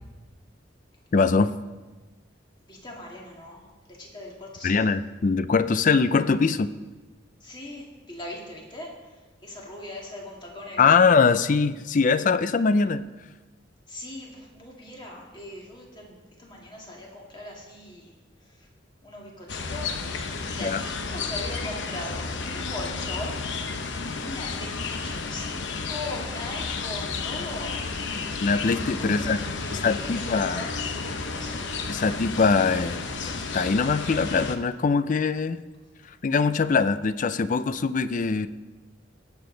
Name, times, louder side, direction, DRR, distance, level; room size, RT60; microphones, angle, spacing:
voice 1, 1.1-1.5 4.6-6.7 10.8-13.0 20.6-20.8 28.4-29.4 29.8-30.7 31.9-33.0 33.5-35.6 36.2-38.5, left 4 dB, 40° left, 13 dB, 0.4 m, -22 dB
voice 2, 2.6-4.9 7.4-11.2 13.9-18.7 19.0-27.8 29.0-31.7, left 1 dB, 25° left, -2 dB, 2.1 m, -40 dB
sound 1, 19.5-34.6, left 4 dB, 70° left, 0.8 m, -32 dB
18.5 x 7.1 x 3.9 m, 1.2 s
head